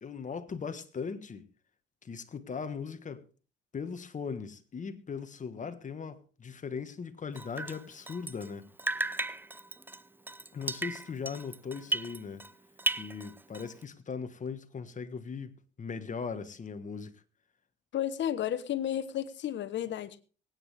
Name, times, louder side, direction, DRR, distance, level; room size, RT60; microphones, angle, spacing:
voice 1, 0.0-1.5 2.0-3.2 3.7-8.7 10.5-12.4 13.0-17.2, left 5 dB, 40° left, 1.5 m, -39 dB
Drip, 7.3-8.5 8.8-12.5 12.8-13.8, right 2 dB, 10° right, 0.5 m, -35 dB
voice 2, 17.9-20.2, left 10 dB, 70° left, 1.2 m, -32 dB
23.0 x 9.4 x 3.5 m
cardioid pair, 90°, 20 cm